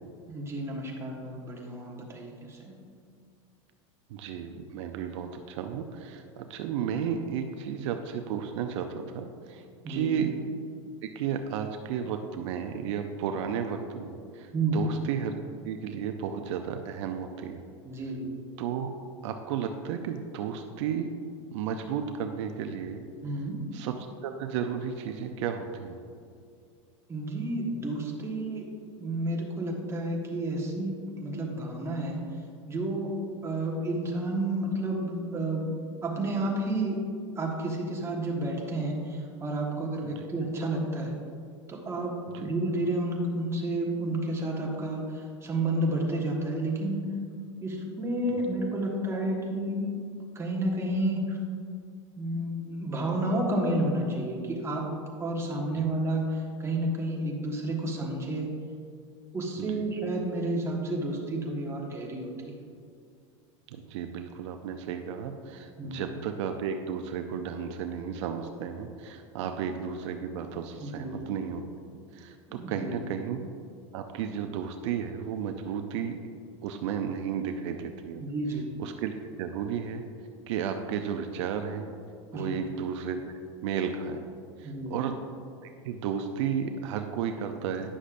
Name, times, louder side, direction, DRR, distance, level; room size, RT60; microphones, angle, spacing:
voice 1, 0.3-2.8 9.8-10.3 14.5-14.8 17.8-18.4 23.2-23.6 27.1-28.7 29.0-32.2 32.7-33.1 33.4-37.0 37.3-41.2 41.7-47.0 47.6-49.9 50.3-51.4 52.2-54.9 55.2-58.5 59.3-62.5 65.8-66.0 70.8-71.2 72.5-72.9 78.2-78.7 82.3-82.6 84.6-84.9, right 1 dB, 15° right, -1 dB, 1.3 m, -31 dB
voice 2, 4.1-10.3 11.0-15.3 15.6-17.6 18.6-18.9 19.2-21.1 21.5-23.0 23.7-24.0 24.2-26.0 40.0-40.2 42.3-42.5 55.8-55.9 59.6-59.8 63.7-71.6 72.1-73.5 73.9-76.2 76.6-78.2 78.8-79.1 79.4-80.0 80.5-81.9 82.3-83.3 83.6-84.2 84.6-85.2 85.6-87.9, right 7 dB, 70° right, 6 dB, 0.5 m, -33 dB
9.9 x 6.2 x 2.5 m, 2.3 s
supercardioid pair, 115°, 16 cm